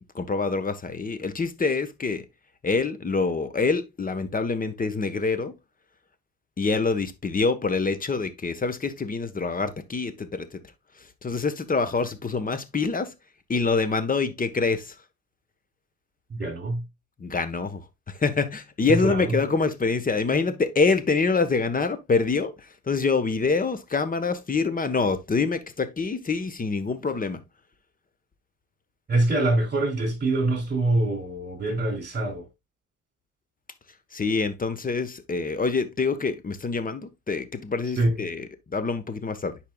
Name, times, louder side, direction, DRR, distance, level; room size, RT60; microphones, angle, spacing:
voice 1, 0.0-2.2 2.6-5.5 6.6-10.6 11.0-13.1 13.5-15.0 17.2-27.4 34.1-39.6, left 4 dB, 30° left, 1.2 m, -26 dB
voice 2, 16.3-16.8 18.9-19.4 29.1-32.5 38.0-38.2, right 2 dB, 35° right, 3.3 m, -24 dB
10.5 x 4.7 x 2.3 m
cardioid pair, 90°, 30 cm